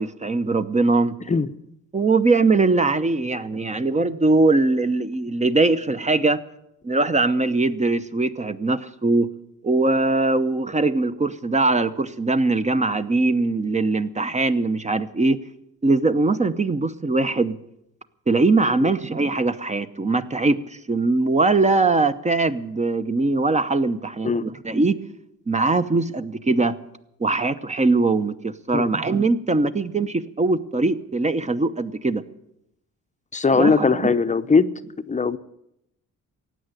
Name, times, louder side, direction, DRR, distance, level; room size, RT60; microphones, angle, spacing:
voice 1, 0.0-1.2 1.9-6.4 6.8-9.3 9.6-15.4 15.8-17.6 18.3-25.0 25.5-26.8 27.2-32.2 33.5-34.0, right 3 dB, 25° right, 11 dB, 0.8 m, -21 dB
voice 2, 33.3-34.7 35.1-35.4, left 4 dB, 25° left, 11 dB, 0.7 m, -19 dB
15.5 x 9.0 x 9.6 m, 0.81 s
cardioid pair, 90°, 30 cm